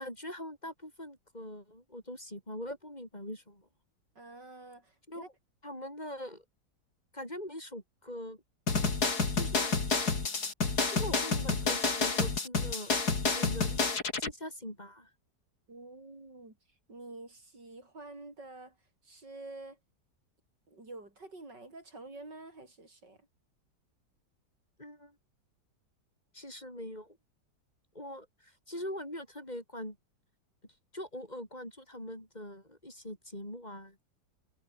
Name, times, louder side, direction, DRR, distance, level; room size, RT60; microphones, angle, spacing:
voice 1, 0.0-3.7 5.1-5.2 5.6-6.4 7.1-8.4 9.3-9.7 10.9-12.9 13.3-13.8 14.2-15.1 24.8-25.2 26.3-27.2 27.9-30.0 30.9-34.1, left 1 dB, 25° left, 7.7 m, -42 dB
voice 2, 4.2-5.3 15.7-16.6 16.9-18.8 19.0-19.8 20.7-23.2, right 2 dB, 85° right, 7.2 m, -48 dB
sound 1, 8.7-14.3, left 4 dB, 65° left, 3.8 m, -29 dB
omnidirectional pair, 1.8 m